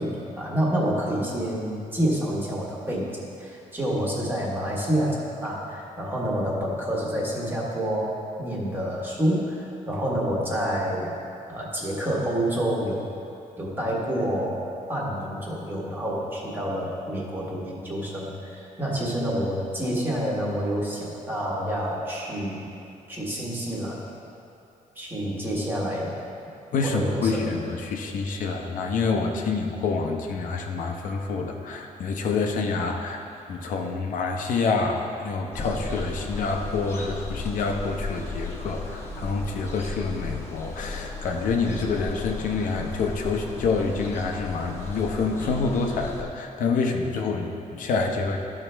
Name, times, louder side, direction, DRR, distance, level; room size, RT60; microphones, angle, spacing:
voice 1, 0.0-11.1 11.5-13.0 13.6-22.7 23.1-24.0 24.9-26.1 26.8-27.5, equal, 15° right, -5 dB, 1.4 m, -28 dB
voice 2, 26.7-33.2 33.5-48.4, left 4 dB, 75° left, 2 dB, 0.8 m, -27 dB
sound 1, 35.5-46.2, left 2 dB, 20° left, 1.0 m, -35 dB
13.0 x 5.7 x 3.4 m, 2.7 s
wide cardioid pair, 165°, 14 cm